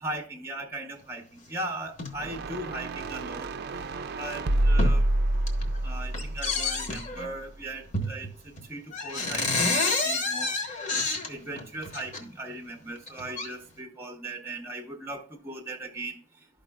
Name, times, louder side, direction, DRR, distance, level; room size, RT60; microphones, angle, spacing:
voice 1, 0.0-1.2 1.5-3.5 4.2-5.0 5.8-10.5 11.3-16.2, right 2 dB, 15° right, 0.7 m, -38 dB
sound 1, 1.9-2.1 3.0-3.2 3.8-3.9 4.3-5.0 5.3-5.8 6.1-7.3 7.9-8.3 8.6-8.7 8.9-12.2 13.0-13.5, left 3 dB, 40° left, 1.0 m, -29 dB
sound 2, 2.1-7.4, right 1 dB, 55° right, 0.4 m, -28 dB
12.0 x 5.2 x 2.2 m
head